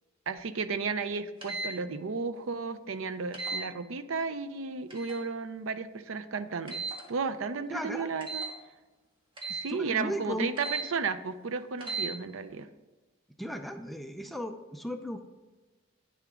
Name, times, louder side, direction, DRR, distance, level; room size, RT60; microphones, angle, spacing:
voice 1, 0.3-6.8 7.1-8.4 9.4-12.7, right 5 dB, 70° right, 13 dB, 0.5 m, -33 dB
sound 1, 1.4-1.7 3.3-3.6 4.9-5.2 6.7-7.0 8.2-8.5 9.4-9.7 10.6-10.9 11.8-12.1, right 3 dB, 25° right, 1.6 m, -35 dB
voice 2, 7.7-8.1 9.5-10.5 13.4-15.3, equal, ahead, 6 dB, 0.5 m, -36 dB
9.4 x 6.8 x 3.7 m, 1.2 s
head